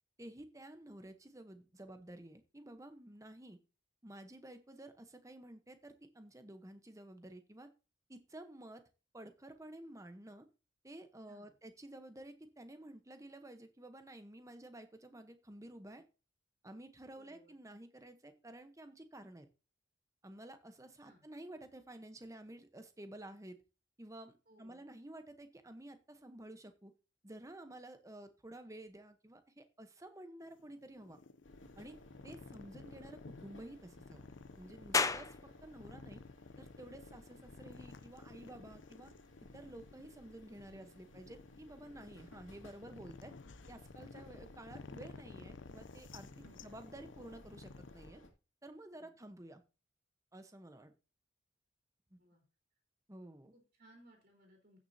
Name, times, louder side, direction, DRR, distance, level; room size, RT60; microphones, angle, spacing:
voice 1, 0.2-3.6 4.0-7.7 8.1-8.8 9.1-10.5 10.8-16.0 16.6-19.5 20.2-23.6 24.0-26.9 27.2-31.2 31.8-32.0 32.2-34.3 34.6-35.3 35.6-36.2 36.6-39.1 39.5-43.3 43.7-48.2 48.6-49.6 50.3-50.9 52.1-52.2 53.1-53.5, right 1 dB, 15° right, 8 dB, 0.9 m, -52 dB
voice 2, 17.1-17.5 21.0-21.3 24.5-24.8 40.5-41.3 42.5-43.0 46.4-46.8 48.9-49.2 52.2-52.4 53.5-54.8, equal, 45° right, -1 dB, 3.3 m, -64 dB
sound 1, 30.4-48.1, left 4 dB, 70° left, 0.5 m, -54 dB
sound 2, 31.4-48.3, left 1 dB, 90° left, 2.4 m, -59 dB
sound 3, 34.9-48.1, left 4 dB, 15° left, 0.4 m, -45 dB
16.0 x 6.3 x 2.8 m, 0.32 s
head